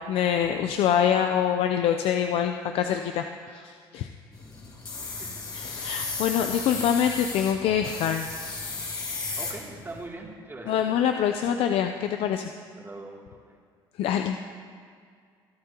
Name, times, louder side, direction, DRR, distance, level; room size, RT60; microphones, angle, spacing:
voice 1, 0.0-4.1 5.5-8.3 10.7-12.5 14.0-14.4, left 9 dB, 70° left, 6 dB, 0.6 m, -25 dB
sound 1, 4.3-10.1, left 3 dB, 45° left, 3.3 m, -35 dB
voice 2, 9.4-11.0 12.7-13.6, right 2 dB, 25° right, -2 dB, 2.8 m, -42 dB
22.5 x 11.5 x 3.0 m, 2.1 s
supercardioid pair, 80°, 10 cm